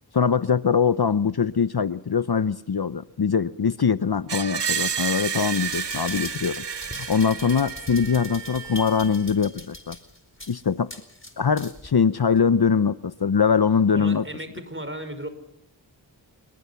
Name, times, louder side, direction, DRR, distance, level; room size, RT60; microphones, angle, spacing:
voice 1, 0.1-6.6 7.1-10.0 10.5-10.9 11.4-14.2, left 6 dB, 55° left, 14 dB, 0.8 m, -22 dB
Screech, 4.3-9.3, right 7 dB, 60° right, 0.9 m, -31 dB
sound 1, 4.9-11.9 12.4-12.5, left 1 dB, 25° left, 4.4 m, -41 dB
voice 2, 13.9-15.3, right 1 dB, 25° right, 10 dB, 5.4 m, -35 dB
29.0 x 21.0 x 5.9 m, 0.77 s
wide cardioid pair, 45°, 47 cm